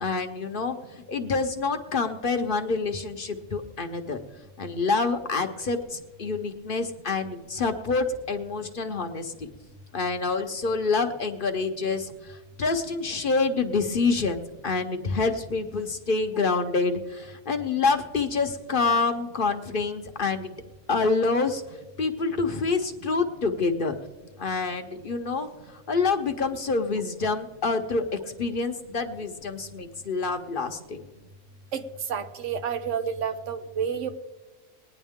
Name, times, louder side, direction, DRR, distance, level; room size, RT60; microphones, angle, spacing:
voice 1, 0.0-4.2 4.6-9.5 9.9-20.5 20.9-21.6 22.0-23.9 24.4-31.0, left 4 dB, 50° left, 6 dB, 0.9 m, -27 dB
voice 2, 32.1-34.1, right 7 dB, 70° right, 8 dB, 1.2 m, -29 dB
20.5 x 9.9 x 3.6 m, 1.2 s
omnidirectional pair, 1.3 m